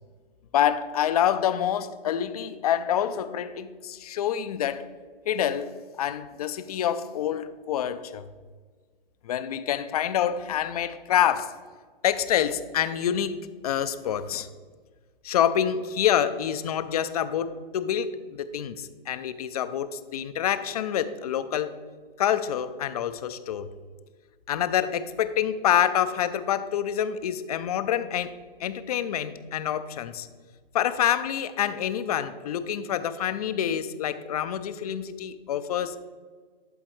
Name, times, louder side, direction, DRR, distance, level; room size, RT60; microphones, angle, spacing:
voice 1, 0.5-4.9 5.3-8.2 9.2-11.6 12.0-14.5 15.2-21.7 22.2-23.7 24.5-28.3 28.6-30.3 30.7-36.0, left 10 dB, 40° left, 13 dB, 0.5 m, -27 dB
11.5 x 4.0 x 4.5 m, 1.5 s
hypercardioid pair, 140°, 30 cm